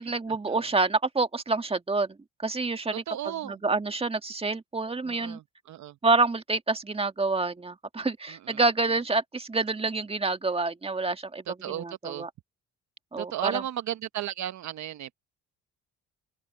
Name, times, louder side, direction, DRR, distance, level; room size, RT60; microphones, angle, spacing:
voice 1, 0.0-5.4 6.0-12.3 13.1-13.6, right 3 dB, 20° right, 1.8 m, -28 dB
voice 2, 3.1-3.6 5.1-5.9 8.5-8.6 11.5-12.3 13.2-15.2, right 12 dB, 65° right, 1.0 m, -34 dB
open air
supercardioid pair, 75°, 31 cm